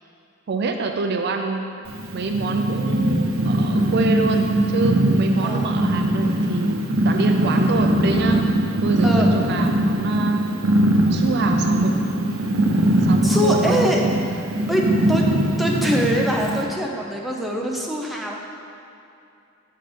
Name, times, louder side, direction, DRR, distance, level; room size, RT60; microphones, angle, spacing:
voice 1, 0.5-1.6 2.1-10.5 11.1-11.9 13.0-13.8, right 3 dB, 55° right, 4 dB, 0.5 m, -26 dB
Purr, 1.9-16.6, right 1 dB, 85° right, 0.8 m, -21 dB
voice 2, 13.2-14.0 14.7-15.3 15.6-18.3, equal, ahead, -2 dB, 0.7 m, -23 dB
6.5 x 5.8 x 5.1 m, 2.6 s
head